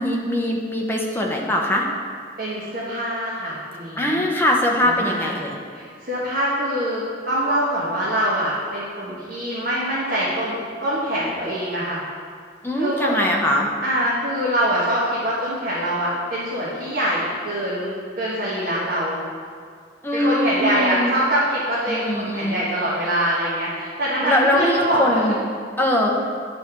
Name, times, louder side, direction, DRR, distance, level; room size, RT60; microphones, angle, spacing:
voice 1, 0.0-1.9 4.0-5.6 12.6-13.7 20.0-21.1 21.9-22.6 24.2-25.4 25.8-26.2, left 1 dB, 10° left, -1 dB, 0.8 m, -21 dB
voice 2, 2.4-4.2 4.8-5.4 5.7-12.0 12.7-13.2 13.8-19.2 20.1-25.4, right 1 dB, 50° right, -8 dB, 1.4 m, -24 dB
8.9 x 4.3 x 6.0 m, 2.1 s
head